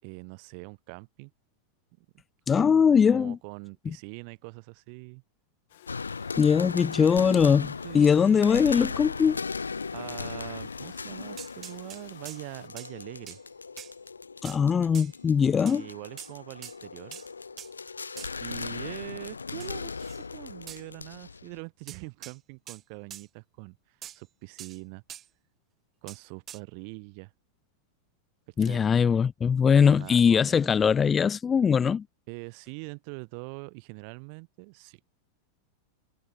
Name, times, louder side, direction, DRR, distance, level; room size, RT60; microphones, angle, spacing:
voice 1, 0.0-1.3 2.0-2.1 2.5-2.7 3.1-5.2 7.8-8.4 9.9-13.4 15.6-17.2 18.4-19.9 20.3-25.0 26.0-27.3 28.5-28.9 29.9-30.7 32.3-35.0, right 40 dB or more, 45° right, 6.1 m, -43 dB
voice 2, 2.5-3.4 6.4-9.4 14.4-15.8 28.6-32.0, left 6 dB, 20° left, 0.4 m, -21 dB
Domestic sounds home sounds, 5.7-12.7, left 14 dB, 55° left, 5.0 m, -54 dB
sound 1, 5.9-21.6, left 4 dB, 75° left, 0.5 m, -38 dB
sound 2, 11.4-12.4 12.8-12.9 13.3-13.4 13.8-13.9 14.4-14.6 14.9-15.1 15.7-15.8 16.2-16.3 16.6-16.8 17.1-17.3 17.6-17.7 18.2-18.5 19.6-20.2 20.7-20.8 21.9-22.4 22.7-22.8 23.1-23.3 24.0-24.2 24.6-24.8 25.1-25.3 26.1-26.2 26.5-26.6, right 11 dB, 30° right, 4.0 m, -44 dB
figure-of-eight pair, 90°, 0 cm